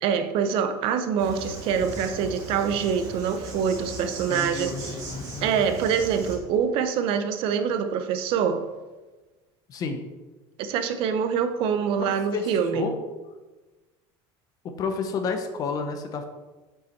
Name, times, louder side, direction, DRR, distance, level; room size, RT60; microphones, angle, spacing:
voice 1, 0.0-5.0 5.4-8.7 10.6-12.9, right 7 dB, 45° right, 9 dB, 0.7 m, -25 dB
Insect, 1.2-6.4, right 1 dB, 30° right, 2.9 m, -38 dB
voice 2, 4.3-5.6 9.7-10.0 12.0-13.0 14.6-16.3, left 4 dB, 30° left, 6 dB, 0.9 m, -31 dB
8.0 x 7.0 x 4.5 m, 1.2 s
cardioid pair, 170°, 12 cm